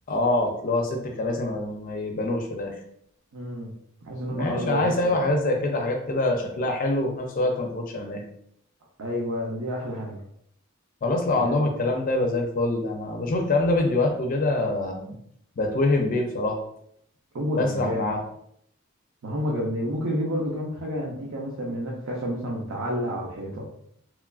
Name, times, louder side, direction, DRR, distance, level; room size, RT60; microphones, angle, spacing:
voice 1, 0.1-2.7 4.3-8.2 11.0-15.2 15.6-16.6 17.6-18.2, left 2 dB, 45° left, 3 dB, 0.4 m, -25 dB
voice 2, 3.3-3.7 4.0-5.2 9.0-10.2 11.3-11.5 17.3-18.0 19.2-23.7, equal, 80° right, -3 dB, 0.6 m, -30 dB
3.0 x 2.3 x 2.3 m, 0.69 s
head